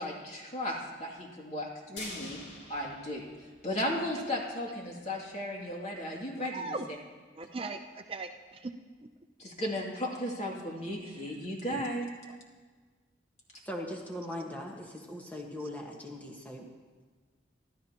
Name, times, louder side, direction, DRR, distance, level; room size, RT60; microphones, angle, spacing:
voice 1, 0.0-2.4 2.7-3.2 3.6-6.8 9.4-12.1, left 1 dB, 35° left, -2 dB, 2.5 m, -35 dB
sound 1, 2.0-4.1 4.4-4.5 4.9-5.0, left 2 dB, 65° left, 2.7 m, -46 dB
voice 2, 6.4-6.9 7.4-8.7 11.0-11.4 11.7-12.0 12.2-12.4 15.6-15.7, right 3 dB, 30° right, 6 dB, 0.5 m, -40 dB
voice 3, 13.7-16.7, left 1 dB, 10° left, 0 dB, 1.4 m, -40 dB
26.5 x 12.5 x 2.9 m, 1.4 s
head